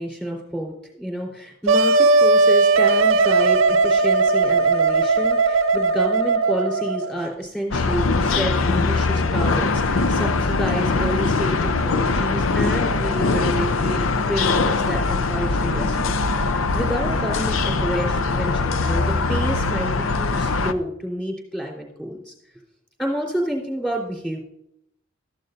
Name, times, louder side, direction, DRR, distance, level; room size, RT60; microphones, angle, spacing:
voice 1, 0.0-22.3 23.0-24.4, equal, 5° left, -1 dB, 3.7 m, -29 dB
Wind instrument woodwind instrument, 1.7-7.2, right 3 dB, 80° right, 0.6 m, -18 dB
sound 1, 7.7-20.7, left 3 dB, 80° left, 0.6 m, -22 dB
14.0 x 11.0 x 2.6 m, 0.76 s
head